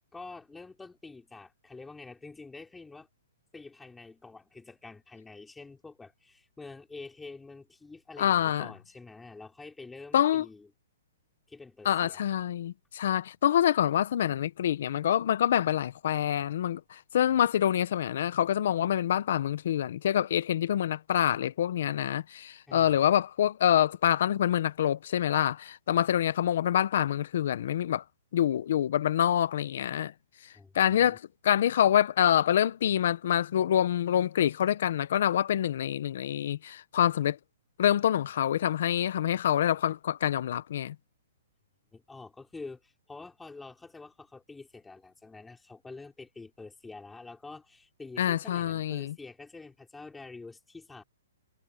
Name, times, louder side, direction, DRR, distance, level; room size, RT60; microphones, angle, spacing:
voice 1, 0.1-3.1 3.5-10.7 11.5-12.2 22.7-23.0 30.5-31.2 41.9-51.0, left 3 dB, 5° left, 4.2 m, -47 dB
voice 2, 8.2-8.7 10.1-10.4 11.8-28.0 28.3-30.1 30.7-37.4 37.8-40.9 48.2-49.1, left 10 dB, 60° left, 1.0 m, -26 dB
hypercardioid pair, 150°, 0 cm